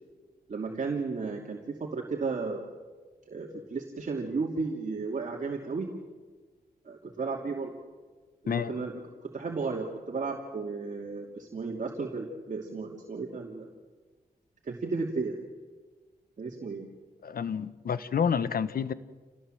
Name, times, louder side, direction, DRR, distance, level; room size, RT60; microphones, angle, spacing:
voice 1, 0.5-2.7 3.3-5.9 6.8-7.8 8.4-13.7 14.6-15.3 16.4-16.9, right 4 dB, 55° right, 0 dB, 2.7 m, -34 dB
voice 2, 17.2-18.9, left 7 dB, 70° left, 14 dB, 1.2 m, -29 dB
28.5 x 19.0 x 7.8 m, 1.3 s
wide cardioid pair, 105°, 16 cm